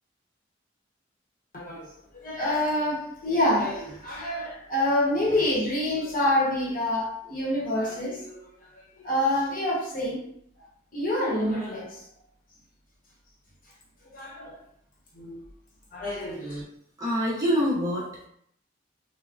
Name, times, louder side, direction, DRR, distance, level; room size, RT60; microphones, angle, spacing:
voice 1, 1.5-1.9 2.2-8.4 9.0-10.3 10.9-12.0 14.1-14.6 15.1-15.4 15.9-16.6, left 1 dB, 50° left, -5 dB, 1.0 m, -27 dB
voice 2, 17.0-18.3, equal, 20° right, -7 dB, 0.7 m, -25 dB
3.5 x 2.1 x 2.4 m, 0.69 s
head